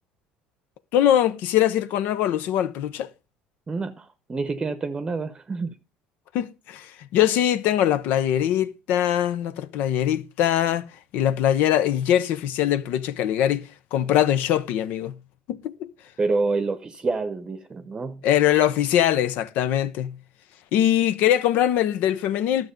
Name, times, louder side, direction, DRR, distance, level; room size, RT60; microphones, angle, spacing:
voice 1, 0.9-3.1 6.3-10.8 11.1-15.2 15.5-15.9 18.2-20.2 20.7-22.7, left 11 dB, 70° left, 0.7 m, -22 dB
voice 2, 3.7-5.8 16.2-18.2, right 3 dB, 25° right, 0.8 m, -27 dB
11.5 x 6.2 x 5.1 m
supercardioid pair, 90°, 3 cm